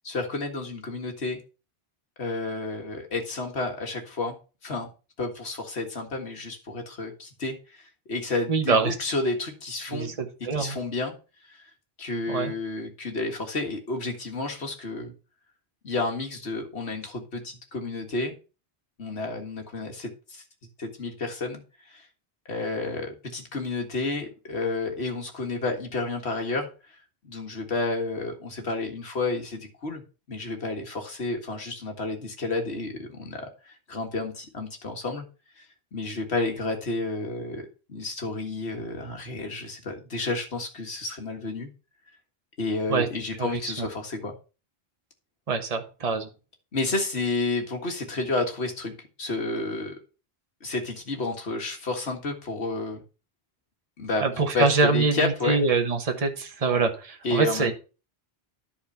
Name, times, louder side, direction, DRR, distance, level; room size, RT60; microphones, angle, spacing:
voice 1, 0.0-1.4 2.2-4.4 4.6-4.9 5.2-10.1 10.6-11.2 11.4-11.6 12.0-15.1 15.8-18.4 19.0-20.4 20.8-21.6 21.9-22.1 22.5-26.7 27.2-30.0 30.3-35.2 35.6-35.7 35.9-37.6 37.9-41.7 42.6-44.3 46.7-50.0 50.6-53.0 54.0-55.6 57.2-57.7, left 3 dB, 80° left, 3 dB, 2.0 m, -31 dB
voice 2, 8.5-8.9 9.9-10.8 12.3-12.5 42.9-43.1 43.4-43.9 45.5-46.3 54.2-57.7, right 4 dB, 35° right, 5 dB, 1.3 m, -24 dB
10.5 x 4.4 x 5.6 m, 0.33 s
omnidirectional pair, 1.1 m